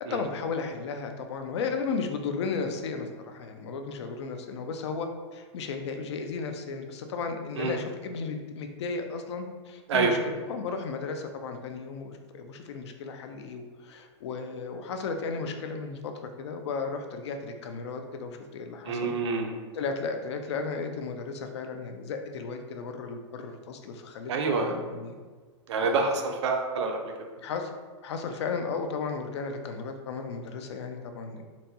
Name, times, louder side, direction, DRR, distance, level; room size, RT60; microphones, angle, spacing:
voice 1, 0.0-19.1 19.7-25.1 25.8-26.0 27.4-27.7 28.0-31.4, left 4 dB, 65° left, 6 dB, 0.4 m, -34 dB
voice 2, 18.8-19.5 24.3-24.7 25.7-27.1, right 4 dB, 70° right, 3 dB, 0.5 m, -27 dB
4.0 x 2.2 x 2.7 m, 1.4 s
supercardioid pair, 170°, 15 cm